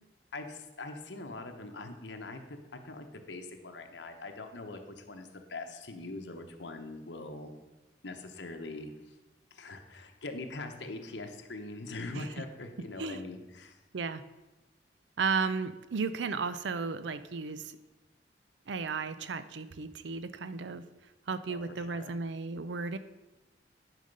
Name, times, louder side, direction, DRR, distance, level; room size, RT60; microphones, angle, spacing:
voice 1, 0.3-7.5 8.0-9.1 9.5-13.8 21.5-22.2, left 2 dB, 85° left, 5 dB, 1.1 m, -42 dB
voice 2, 15.2-17.7 18.7-20.8 21.3-23.0, right 4 dB, 90° right, 13 dB, 0.5 m, -34 dB
11.0 x 5.1 x 5.3 m, 1.1 s
head